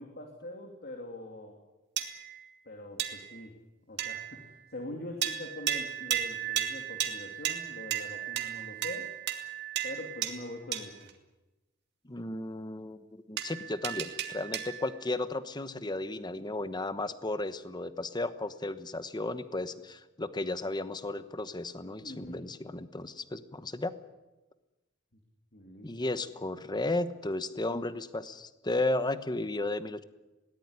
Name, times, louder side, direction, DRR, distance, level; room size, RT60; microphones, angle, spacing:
voice 1, 0.0-1.6 2.6-3.6 3.9-9.1 9.8-11.1 22.0-22.5 25.5-25.9, left 1 dB, 50° left, 2 dB, 2.7 m, -43 dB
sound 1, 2.0-2.5 3.0-3.4 4.0-4.5 5.2-11.1 13.4-15.0, right 10 dB, 55° right, 2.3 m, -35 dB
voice 2, 12.0-23.9 25.8-30.0, left 2 dB, 20° left, 12 dB, 1.1 m, -34 dB
21.0 x 18.0 x 9.7 m, 1.1 s
head